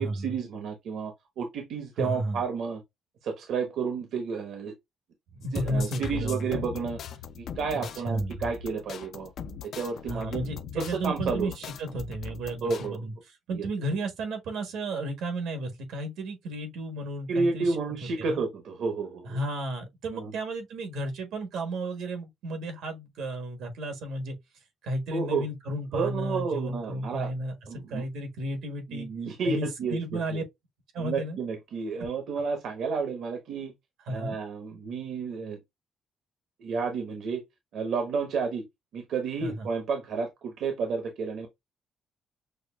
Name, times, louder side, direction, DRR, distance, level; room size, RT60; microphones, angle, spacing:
voice 1, 0.0-2.8 3.2-4.7 5.5-7.0 7.4-9.3 9.7-10.4 10.8-11.5 12.6-13.0 13.5-13.7 17.3-19.4 20.1-20.3 25.1-25.4 25.9-27.3 27.7-28.0 28.9-30.0 30.3-30.4 31.0-33.7 34.1-35.6 36.6-37.4 37.7-38.6 38.9-41.5, right 5 dB, 70° right, 0.9 m, -31 dB
voice 2, 2.0-2.4 5.3-6.7 7.7-8.4 10.1-13.1 13.5-17.7 18.2-18.4 19.2-24.4 24.8-29.1 29.4-30.4 30.9-31.4 34.1-34.4 39.4-39.7, right 1 dB, 90° right, 1.4 m, -33 dB
sound 1, 5.4-12.9, left 7 dB, 60° left, 0.4 m, -40 dB
6.4 x 2.3 x 2.2 m
cardioid pair, 145°, 0 cm